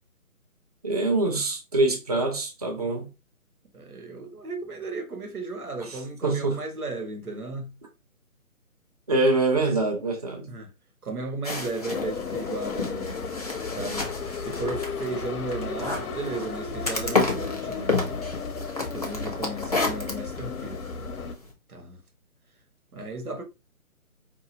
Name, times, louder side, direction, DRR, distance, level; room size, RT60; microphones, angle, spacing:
voice 1, 0.8-3.1 6.2-6.6 9.1-10.5, right 2 dB, 30° right, 0.6 m, -24 dB
voice 2, 3.7-7.7 10.5-10.7 11.0-13.2 13.7-17.9 18.9-20.8 21.7-22.0 22.9-23.4, right 3 dB, 90° right, 1.5 m, -35 dB
sound 1, 11.4-21.5, left 3 dB, 30° left, 0.6 m, -31 dB
sound 2, 11.9-21.3, left 5 dB, 80° left, 0.7 m, -34 dB
4.8 x 2.7 x 2.8 m
hypercardioid pair, 165°, 43 cm